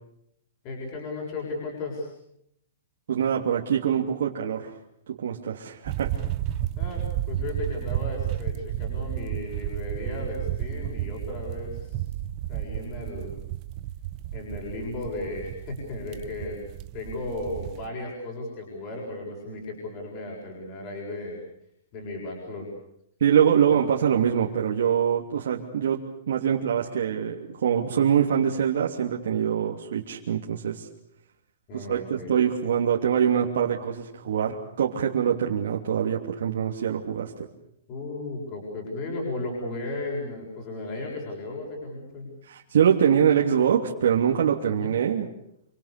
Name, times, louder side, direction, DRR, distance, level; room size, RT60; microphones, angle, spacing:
voice 1, 0.6-2.1 6.8-12.0 12.5-13.4 14.3-16.7 16.9-21.4 21.9-22.7 23.7-23.8 31.7-32.3 37.9-42.3 44.6-44.9, left 2 dB, 25° left, -1 dB, 7.2 m, -35 dB
voice 2, 3.1-4.7 5.1-6.1 23.2-30.9 31.7-37.3 42.5-45.3, right 8 dB, 65° right, -1 dB, 3.0 m, -24 dB
sound 1, 5.8-17.9, right 12 dB, 25° right, 1.1 m, -32 dB
27.5 x 26.0 x 6.8 m, 0.75 s
hypercardioid pair, 175°, 0 cm